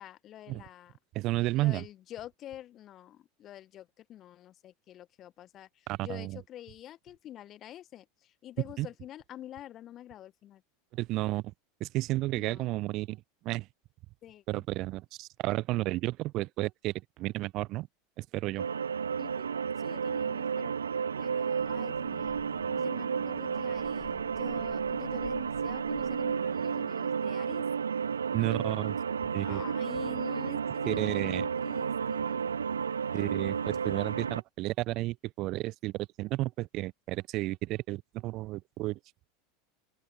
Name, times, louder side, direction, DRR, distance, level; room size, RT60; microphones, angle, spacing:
voice 1, 0.0-1.0 1.5-10.6 12.3-12.7 14.2-14.6 19.2-19.5 19.8-20.7 21.2-22.4 22.7-27.7 29.4-32.4, left 12 dB, 35° left, 1.7 m, -47 dB
voice 2, 1.1-1.8 5.9-6.4 8.8-8.9 10.9-11.4 11.8-13.7 14.5-17.9 18.2-18.7 28.3-29.0 29.3-29.6 30.9-31.5 33.1-39.0, right 18 dB, 45° right, 1.1 m, -32 dB
sound 1, 18.6-34.4, right 6 dB, 75° right, 0.4 m, -32 dB
sound 2, 21.6-26.6, left 15 dB, 60° left, 1.9 m, -52 dB
open air
figure-of-eight pair, 80°, 0 cm